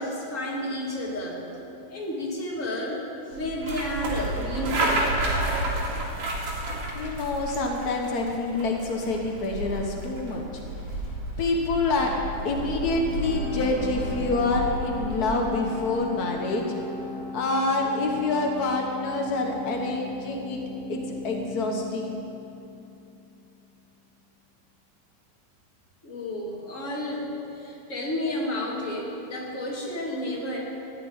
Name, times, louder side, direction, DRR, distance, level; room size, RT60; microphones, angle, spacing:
voice 1, 0.0-1.4 1.9-3.0 3.3-5.0 26.0-30.6, left 1 dB, 25° left, -3 dB, 2.4 m, -31 dB
sound 1, 3.3-15.6, right 1 dB, 85° right, 3.8 m, -31 dB
voice 2, 6.9-10.4 11.4-12.1 12.4-16.6 17.3-20.6 20.9-22.2, left 3 dB, 85° left, 1 dB, 0.8 m, -27 dB
sound 2, 12.0-23.4, left 2 dB, 45° left, 2.4 m, -37 dB
14.0 x 7.7 x 9.4 m, 2.7 s
omnidirectional pair, 3.6 m